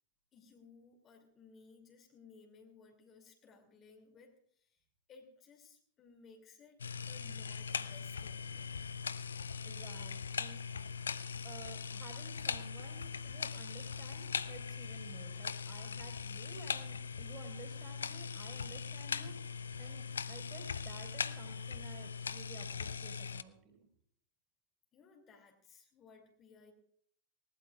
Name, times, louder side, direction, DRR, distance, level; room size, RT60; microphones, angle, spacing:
voice 1, 0.3-6.8 7.1-8.8 24.9-26.7, left 4 dB, 30° left, 2 dB, 2.7 m, -60 dB
sound 1, 6.8-23.4, left 6 dB, 70° left, 0.5 m, -40 dB
voice 2, 9.6-10.6 11.4-23.9, right 5 dB, 30° right, 1 dB, 4.6 m, -53 dB
20.5 x 18.5 x 2.4 m, 0.63 s
figure-of-eight pair, 90°, 0 cm